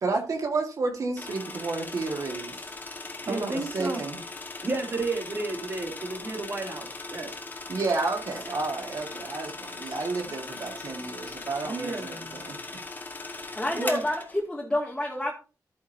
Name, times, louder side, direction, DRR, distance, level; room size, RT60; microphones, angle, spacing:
voice 1, 0.0-2.7 3.3-4.2 7.7-12.8, right 3 dB, 55° right, 1.8 m, -31 dB
sound 1, 1.2-14.4, left 3 dB, 30° left, 1.9 m, -39 dB
voice 2, 3.2-4.0 4.6-7.4 11.6-12.5 13.4-14.0, right 3 dB, 35° right, 2.7 m, -32 dB
voice 3, 13.6-15.3, left 1 dB, 10° left, 2.1 m, -28 dB
13.5 x 9.1 x 2.7 m
wide cardioid pair, 180°, 7 cm